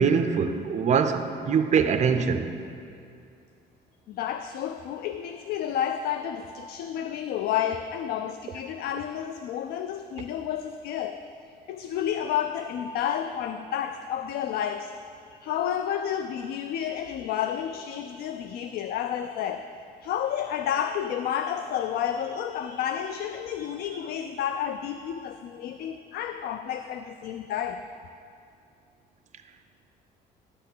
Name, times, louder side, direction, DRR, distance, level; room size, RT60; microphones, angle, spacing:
voice 1, 0.0-2.5, right 6 dB, 45° right, 8 dB, 0.6 m, -23 dB
voice 2, 4.1-14.9 15.3-19.8 20.0-27.9, left 9 dB, 70° left, 9 dB, 0.4 m, -31 dB
11.0 x 4.3 x 7.2 m, 2.5 s
cardioid pair, 110°, 17 cm